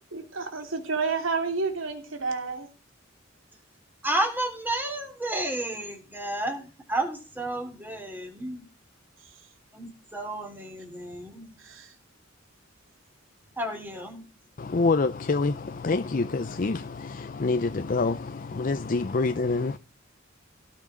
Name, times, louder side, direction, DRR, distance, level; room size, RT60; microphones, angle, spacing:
voice 1, 0.1-2.7 11.6-11.9, right 4 dB, 80° right, 3.0 m, -30 dB
voice 2, 4.0-8.6 9.7-11.5 13.6-14.2, right 1 dB, 10° right, 3.4 m, -31 dB
voice 3, 14.6-19.8, left 3 dB, 45° left, 0.5 m, -26 dB
17.5 x 6.0 x 4.8 m
head